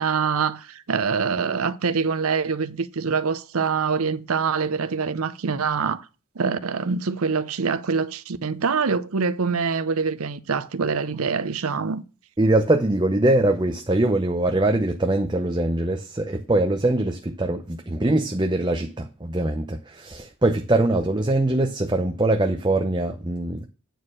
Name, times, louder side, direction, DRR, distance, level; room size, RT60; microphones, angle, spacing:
voice 1, 0.0-6.0 6.4-12.0, right 5 dB, 80° right, 0.7 m, -25 dB
voice 2, 12.4-23.7, right 2 dB, 20° right, 0.6 m, -22 dB
9.2 x 4.5 x 6.4 m
head